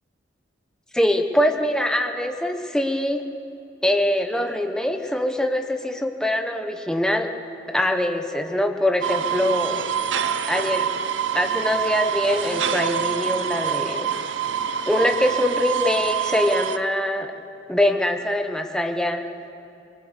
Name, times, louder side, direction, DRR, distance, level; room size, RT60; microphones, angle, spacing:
voice 1, 0.9-3.2 3.8-7.3 7.7-9.8 10.5-10.9 11.3-14.1 14.9-17.3 17.7-19.3, left 1 dB, 5° left, 4 dB, 1.1 m, -23 dB
sound 1, 9.0-16.8, right 8 dB, 90° right, 0.7 m, -26 dB
23.5 x 21.5 x 6.8 m, 2.7 s
head